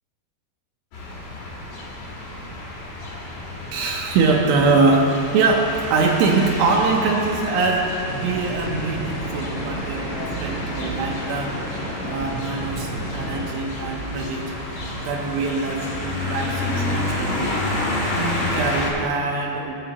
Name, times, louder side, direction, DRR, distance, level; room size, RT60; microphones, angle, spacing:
sound 1, 0.9-18.9, left 1 dB, 80° left, 3.9 m, -30 dB
voice 1, 3.7-11.5 12.0-14.5 15.0-17.5 18.1-19.8, right 3 dB, 85° right, -1 dB, 2.9 m, -23 dB
sound 2, 8.0-13.4, right 1 dB, 55° left, 1.0 m, -33 dB
16.5 x 7.5 x 2.9 m, 2.8 s
omnidirectional pair, 4.8 m